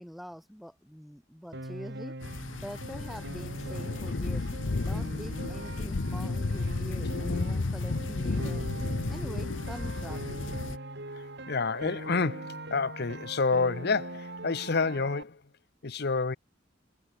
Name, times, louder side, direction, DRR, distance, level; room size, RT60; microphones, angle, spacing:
voice 1, 0.0-2.2 2.6-4.5 4.8-8.7 9.1-10.3, equal, ahead, 6.0 m, -44 dB
Piano, 1.5-15.2, right 1 dB, 60° right, 5.4 m, -41 dB
sound 1, 2.2-10.8, left 3 dB, 85° left, 0.8 m, -33 dB
voice 2, 11.1-15.4 15.8-16.4, left 4 dB, 60° left, 0.9 m, -29 dB
head